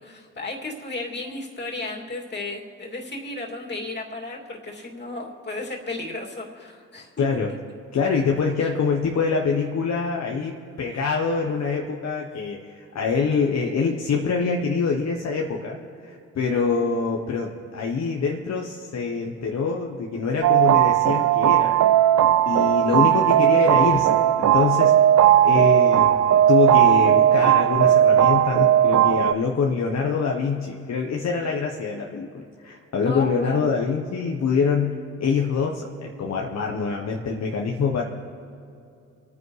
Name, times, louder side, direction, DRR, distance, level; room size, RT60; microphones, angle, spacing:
voice 1, 0.0-7.1 8.6-8.7 22.9-23.2 33.0-33.7, left 2 dB, 35° left, -1 dB, 2.7 m, -34 dB
voice 2, 7.2-7.5 7.9-21.8 22.5-24.9 25.4-38.0, left 5 dB, 60° left, 0 dB, 1.2 m, -25 dB
sound 1, 20.4-29.3, right 11 dB, 60° right, 0.5 m, -17 dB
28.5 x 9.6 x 3.3 m, 2.6 s
cardioid pair, 70°, 30 cm